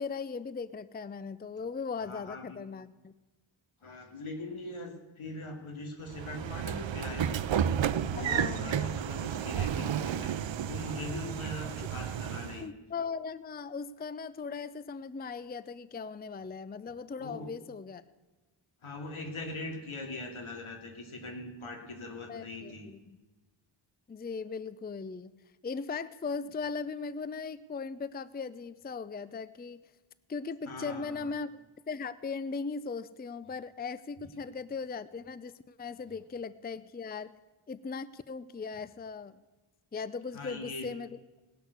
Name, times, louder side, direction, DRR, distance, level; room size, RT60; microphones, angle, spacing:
voice 1, 0.0-3.1 8.2-8.9 12.6-18.0 22.3-23.0 24.1-25.3 25.6-29.9 30.3-37.3 37.7-39.4 39.9-41.1, left 5 dB, 20° left, 16 dB, 0.5 m, -38 dB
voice 2, 2.0-2.6 3.8-7.5 8.0-12.7 17.2-17.5 18.8-22.9 30.7-31.3 40.3-40.9, left 2 dB, 80° left, 2 dB, 2.5 m, -41 dB
Train / Sliding door, 6.1-12.7, right 9 dB, 65° right, 0.6 m, -32 dB
18.5 x 6.4 x 8.0 m, 1.2 s
wide cardioid pair, 60°, 48 cm